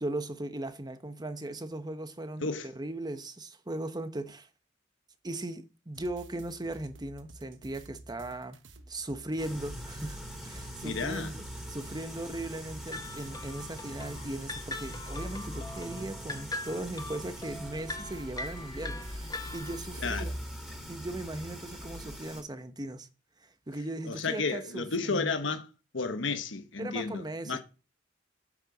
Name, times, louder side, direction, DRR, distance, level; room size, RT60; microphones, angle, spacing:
voice 1, 0.0-4.5 5.2-8.6 8.9-10.2 10.4-11.4 11.7-20.4 20.9-23.1 23.7-25.4 26.8-27.6, right 1 dB, 20° right, 1.0 m, -38 dB
sound 1, 5.9-20.4, right 1 dB, 75° right, 1.2 m, -52 dB
sound 2, 9.4-22.4, equal, ahead, 2.8 m, -42 dB
voice 2, 10.8-11.3 20.0-20.3 24.1-25.7 25.9-27.6, left 4 dB, 80° left, 1.3 m, -32 dB
sound 3, 12.9-20.0, left 2 dB, 20° left, 1.1 m, -42 dB
9.0 x 6.6 x 7.2 m
head